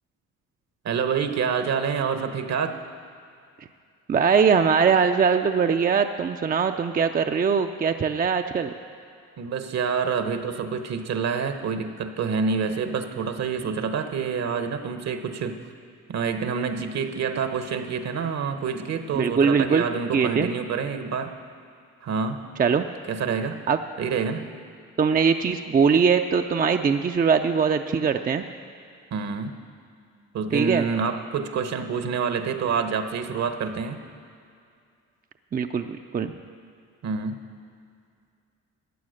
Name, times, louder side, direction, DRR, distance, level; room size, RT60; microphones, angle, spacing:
voice 1, 0.8-2.8 9.4-15.6 16.1-21.3 22.0-22.4 23.1-23.6 24.0-24.5 29.1-29.6 30.3-34.0 37.0-37.4, right 6 dB, 60° right, 8 dB, 1.1 m, -27 dB
voice 2, 4.1-8.7 19.1-19.9 20.1-20.5 22.6-22.9 23.7-23.8 25.0-28.4 30.5-30.9 35.5-36.3, right 6 dB, 30° right, 6 dB, 0.5 m, -21 dB
14.5 x 9.2 x 6.5 m, 2.3 s
cardioid pair, 90°, 30 cm